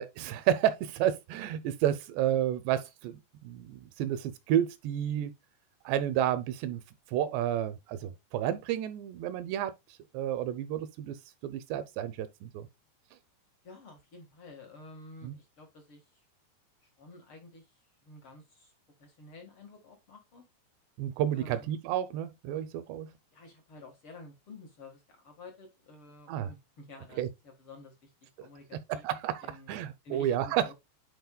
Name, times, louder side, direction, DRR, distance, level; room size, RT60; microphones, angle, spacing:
voice 1, 0.0-5.3 5.9-6.8 7.1-9.7 10.1-11.2 11.4-12.7 15.2-15.4 21.0-23.1 26.3-26.5 27.2-27.3 28.9-30.7, right 11 dB, 80° right, 2.8 m, -31 dB
voice 2, 13.6-16.2 16.8-17.7 18.0-18.7 19.0-20.4 21.3-21.8 23.3-29.1 29.4-29.7 30.0-30.7, left 2 dB, 55° left, 1.5 m, -51 dB
10.5 x 4.5 x 2.3 m
omnidirectional pair, 5.0 m